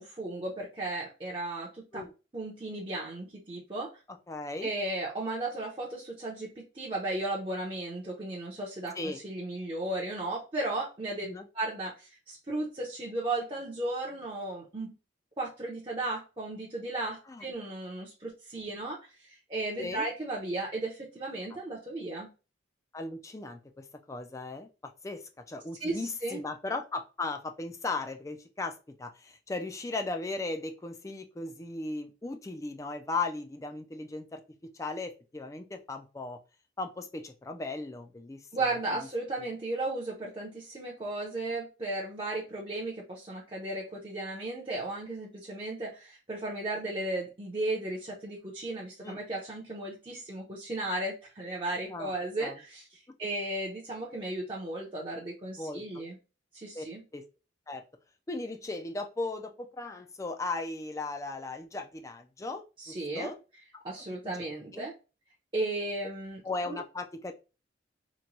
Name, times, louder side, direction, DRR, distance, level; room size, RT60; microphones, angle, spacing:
voice 1, 0.0-2.0 2.3-3.9 4.6-11.3 11.5-14.9 15.4-22.3 25.8-26.4 38.5-56.2 56.5-57.0 62.8-63.3 63.8-64.9 65.5-66.4 66.7-66.8, right 2 dB, 25° right, -4 dB, 0.7 m, -35 dB
voice 2, 4.3-4.7 9.0-9.2 11.2-11.5 17.3-17.4 19.8-20.1 21.5-21.6 22.9-24.7 25.0-34.4 34.7-36.4 36.8-38.7 39.4-39.5 49.0-49.2 51.9-52.6 55.6-56.0 56.7-56.8 57.1-57.2 57.7-57.8 58.3-63.4 63.7-63.8 64.2-64.4 64.7-64.9 66.4-67.3, left 3 dB, 15° left, 5 dB, 0.4 m, -37 dB
3.0 x 2.2 x 3.8 m, 0.31 s
head